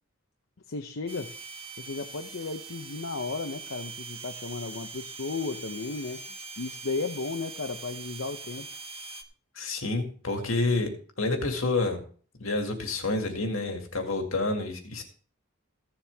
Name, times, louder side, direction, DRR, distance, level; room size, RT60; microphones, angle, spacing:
voice 1, 0.7-1.3 1.8-6.2 6.6-8.7, left 3 dB, 70° left, 6 dB, 0.8 m, -34 dB
sound 1, 1.1-9.2, right 4 dB, 30° right, 1.1 m, -42 dB
voice 2, 9.5-10.9 11.2-12.0 12.4-15.0, left 2 dB, 85° left, 4 dB, 2.2 m, -28 dB
15.5 x 7.3 x 3.5 m, 0.43 s
head